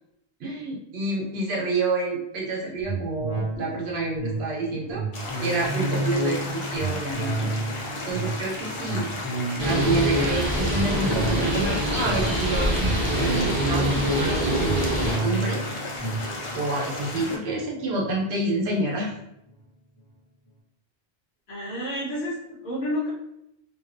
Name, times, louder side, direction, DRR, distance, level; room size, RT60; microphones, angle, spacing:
voice 1, 0.4-5.0 5.4-7.5 8.0-9.1 9.6-15.6 16.5-19.1, right 2 dB, 70° right, -2 dB, 1.0 m, -28 dB
sound 1, 2.8-18.6 19.0-19.1, right 1 dB, 15° left, 0.8 m, -30 dB
sound 2, 5.1-17.4, left 2 dB, 50° left, 0.4 m, -34 dB
Bird, 9.6-15.2, equal, 25° right, 0.7 m, -25 dB
voice 2, 21.5-23.1, left 1 dB, 75° left, -6 dB, 1.2 m, -30 dB
2.8 x 2.3 x 2.4 m, 0.81 s
omnidirectional pair, 1.1 m